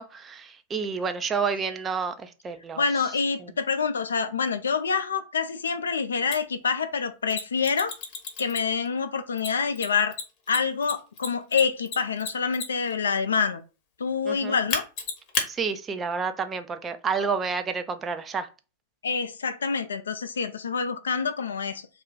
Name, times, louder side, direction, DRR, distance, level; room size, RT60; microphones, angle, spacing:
voice 1, 0.0-2.8 14.3-14.6 15.5-18.5, right 5 dB, 20° right, 0.4 m, -29 dB
voice 2, 2.8-7.9 8.4-10.1 10.5-13.6 14.0-14.9 19.0-21.9, left 5 dB, 70° left, 0.4 m, -26 dB
Mechanisms, 6.3-6.4 7.3-8.9 9.4-12.9 14.7-15.5, left 5 dB, 40° left, 0.9 m, -31 dB
2.4 x 2.3 x 3.7 m
figure-of-eight pair, 90°, 0 cm